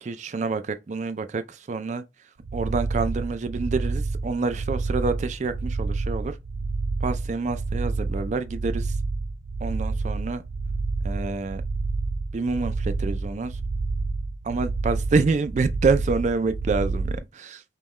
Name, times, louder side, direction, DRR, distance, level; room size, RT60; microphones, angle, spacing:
voice 1, 0.0-2.0 2.5-6.4 7.0-9.0 9.6-10.4 11.0-11.6 12.3-13.6 14.4-17.6, right 4 dB, 40° right, 0.3 m, -27 dB
sound 1, 2.4-17.2, right 3 dB, 90° right, 0.6 m, -29 dB
5.4 x 2.3 x 3.1 m
head